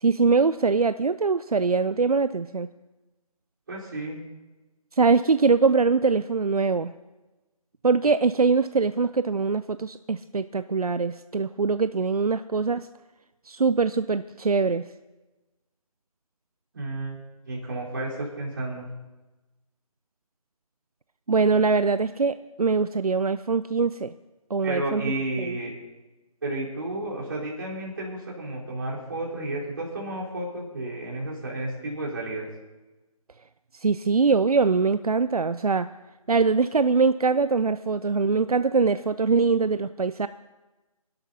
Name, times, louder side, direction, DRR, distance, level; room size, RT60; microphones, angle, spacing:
voice 1, 0.0-2.7 5.0-6.9 7.8-12.9 13.5-14.8 21.3-24.1 24.5-25.0 25.4-25.6 33.7-35.9 36.3-40.3, right 4 dB, 85° right, 13 dB, 0.5 m, -23 dB
voice 2, 3.7-4.2 16.7-17.2 17.5-18.8 24.6-25.7 26.4-32.5, right 2 dB, 40° right, -5 dB, 4.0 m, -32 dB
26.5 x 12.0 x 2.8 m, 1.1 s
figure-of-eight pair, 160°, 19 cm